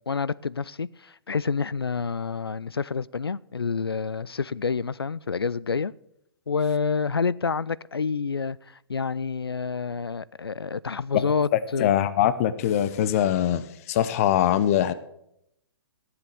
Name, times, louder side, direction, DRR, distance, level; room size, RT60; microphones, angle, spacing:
voice 1, 0.0-5.9 6.5-11.9, left 5 dB, 85° left, 0.4 m, -28 dB
voice 2, 11.5-14.9, left 11 dB, 35° left, 0.7 m, -23 dB
13.5 x 7.8 x 6.7 m
figure-of-eight pair, 120°, 13 cm